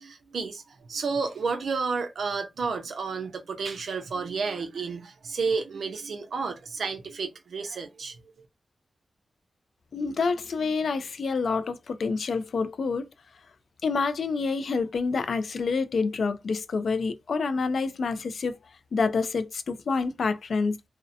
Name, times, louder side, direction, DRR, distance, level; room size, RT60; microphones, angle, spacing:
voice 1, 0.0-8.2, right 4 dB, 75° right, 0.5 m, -31 dB
voice 2, 9.9-13.1 13.8-18.6 18.9-20.8, left 4 dB, 70° left, 0.3 m, -27 dB
2.6 x 2.0 x 2.5 m
wide cardioid pair, 150°, 0 cm